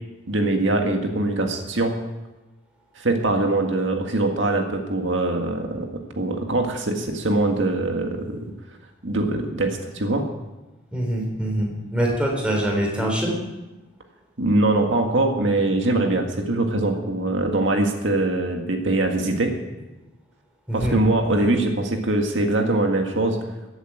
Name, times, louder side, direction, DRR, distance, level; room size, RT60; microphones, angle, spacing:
voice 1, 0.3-2.0 3.0-5.9 6.2-8.4 9.0-10.2 14.4-19.5 20.7-23.4, right 2 dB, 80° right, 3 dB, 1.9 m, -22 dB
voice 2, 10.9-13.4 20.7-21.5, right 1 dB, 5° right, -1 dB, 3.7 m, -24 dB
14.5 x 8.1 x 9.0 m, 1.1 s
head